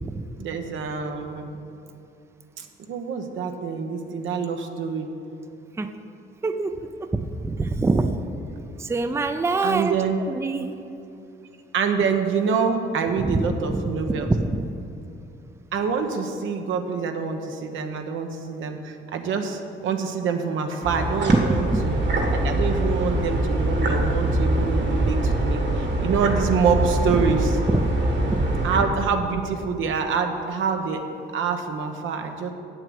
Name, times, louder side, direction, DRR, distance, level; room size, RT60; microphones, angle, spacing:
voice 1, 0.4-1.6 2.6-5.1 9.6-10.2 11.7-14.3 15.7-22.0 22.3-27.5 28.6-31.0 31.3-32.5, right 5 dB, 80° right, 5 dB, 1.0 m, -26 dB
voice 2, 6.4-8.2 8.8-10.0 10.3-10.8 13.2-13.4 13.7-13.8 14.1-14.7 21.3-21.4 21.7-21.8 27.1-27.2 27.7-27.8 28.3-28.4, right 3 dB, 15° right, 8 dB, 0.5 m, -24 dB
sound 1, 20.8-28.8, right 1 dB, 60° right, 1.9 m, -24 dB
8.2 x 7.6 x 7.8 m, 2.6 s
cardioid pair, 90°, 20 cm